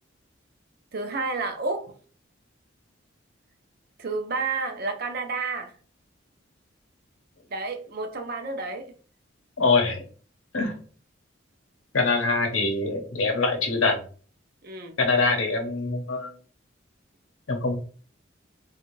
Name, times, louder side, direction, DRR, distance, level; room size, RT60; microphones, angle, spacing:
voice 1, 0.9-1.9 4.0-5.7 7.5-8.9 14.6-15.0, right 3 dB, 50° right, 0.5 m, -30 dB
voice 2, 9.6-10.0 10.5-10.8 11.9-14.0 15.0-16.3 17.5-17.8, left 3 dB, 90° left, 0.7 m, -24 dB
2.5 x 2.3 x 3.0 m
head